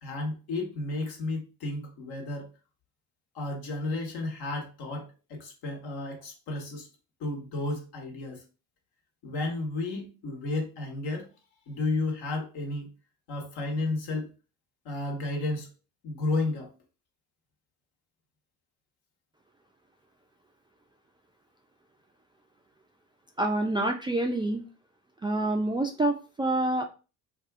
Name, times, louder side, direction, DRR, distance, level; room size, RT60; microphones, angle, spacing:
voice 1, 0.0-2.5 3.3-6.9 7.2-8.4 9.2-11.3 11.7-12.9 13.3-14.3 14.8-15.7 16.0-16.7, left 2 dB, 65° left, 2 dB, 1.1 m, -32 dB
voice 2, 23.4-24.6 25.2-26.8, right 1 dB, 10° right, 2 dB, 0.3 m, -27 dB
2.6 x 2.3 x 3.5 m, 0.32 s
hypercardioid pair, 65°, 41 cm